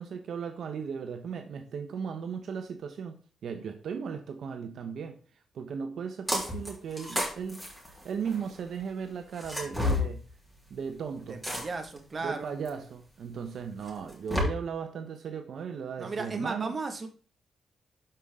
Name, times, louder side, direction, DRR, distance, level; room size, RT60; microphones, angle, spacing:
voice 1, 0.0-3.2 3.4-5.2 5.5-7.6 7.9-10.3 10.7-11.4 12.2-16.8, right 6 dB, 70° right, 1.0 m, -36 dB
sound 1, 6.3-6.7 7.0-8.5 9.4-10.1 11.4-12.0 12.7-12.8 13.9-14.4, left 2 dB, 5° left, 3.5 m, -30 dB
voice 2, 11.3-12.5 16.0-17.1, right 3 dB, 35° right, 1.7 m, -35 dB
12.5 x 5.6 x 3.7 m
cardioid pair, 100°, 0 cm